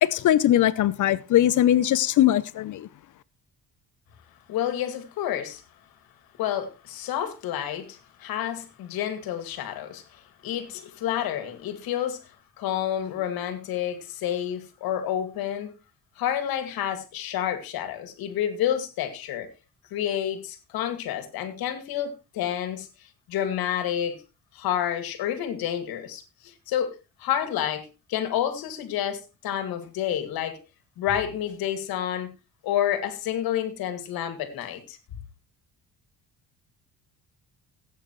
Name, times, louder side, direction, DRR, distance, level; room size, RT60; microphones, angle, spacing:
voice 1, 0.0-2.9, left 12 dB, 60° left, 0.7 m, -20 dB
voice 2, 4.5-5.6 6.4-12.2 12.6-15.7 16.2-19.5 19.9-22.9 23.3-24.2 24.5-26.9 27.2-30.6 31.0-32.3 32.6-35.0, left 10 dB, 85° left, 2.3 m, -29 dB
17.0 x 9.0 x 3.1 m
cardioid pair, 110°, 35 cm